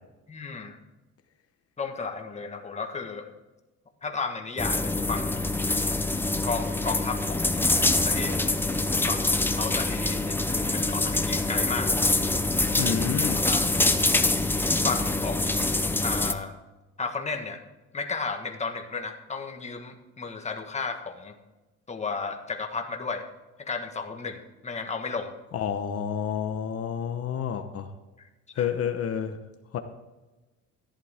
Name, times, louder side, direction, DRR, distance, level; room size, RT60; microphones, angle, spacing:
voice 1, 0.3-0.8 1.8-3.3 4.0-5.3 6.4-7.6 8.0-8.6 9.1-9.2 9.6-11.9 12.7-12.9 13.3-13.7 14.8-15.7 16.0-16.5 17.0-17.6 17.9-21.3 21.9-23.3 23.6-25.3 28.2-28.3 28.6-28.7, left 4 dB, 25° left, 4 dB, 1.5 m, -33 dB
sound 1, 4.6-16.3, left 2 dB, 5° left, 0.6 m, -25 dB
voice 2, 12.8-13.4 25.5-27.9 28.6-29.4 29.7-29.8, left 8 dB, 55° left, 7 dB, 1.0 m, -29 dB
14.5 x 11.0 x 3.6 m, 1.1 s
cardioid pair, 140°, 29 cm